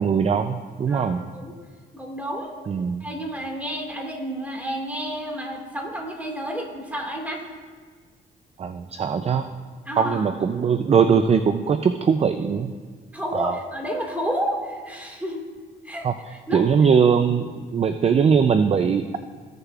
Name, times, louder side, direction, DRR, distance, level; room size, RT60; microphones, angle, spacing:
voice 1, 0.0-1.2 2.7-3.0 8.6-9.5 10.0-12.7 13.3-13.5 16.0-16.1 16.5-19.2, right 6 dB, 30° right, 9 dB, 0.4 m, -20 dB
voice 2, 0.9-1.6 1.9-2.6 3.0-7.4 9.9-10.3 13.1-15.5 15.8-16.7, equal, 5° right, 0 dB, 1.9 m, -31 dB
15.5 x 6.6 x 2.4 m, 1.6 s
cardioid pair, 90°, 20 cm